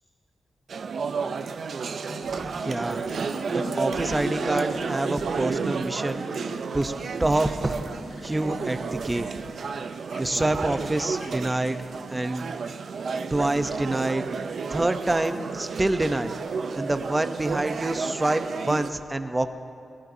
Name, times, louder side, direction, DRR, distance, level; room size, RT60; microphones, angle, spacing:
sound 1, 0.7-18.9, right 5 dB, 65° right, 0.5 m, -32 dB
sound 2, 2.1-12.9 14.2-14.3, left 3 dB, 60° left, 0.7 m, -42 dB
voice 1, 2.4-3.0 3.5-6.2 6.7-6.9 7.2-7.8 8.2-9.3 10.2-11.8 12.1-12.5 13.3-14.2 14.7-16.3 16.8-19.5, right 2 dB, 15° right, 9 dB, 0.6 m, -26 dB
sound 3, 7.7-13.8, left 2 dB, 80° left, 2.5 m, -51 dB
18.5 x 16.5 x 2.7 m, 2.4 s
wide cardioid pair, 110°, 0 cm